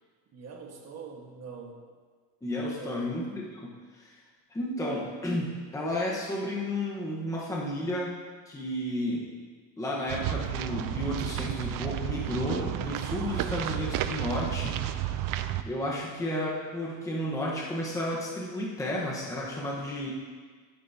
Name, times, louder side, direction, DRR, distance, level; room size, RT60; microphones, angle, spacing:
voice 1, 0.3-1.8 2.6-3.1, right 5 dB, 40° right, 0 dB, 1.5 m, -44 dB
voice 2, 2.4-4.1 4.5-8.2 8.5-9.3 9.8-14.8 15.6-20.1, left 1 dB, 10° left, -4 dB, 1.2 m, -32 dB
sound 1, 10.1-15.6, right 12 dB, 55° right, 0.6 m, -32 dB
15.5 x 8.6 x 2.8 m, 1.5 s
cardioid pair, 160°, 39 cm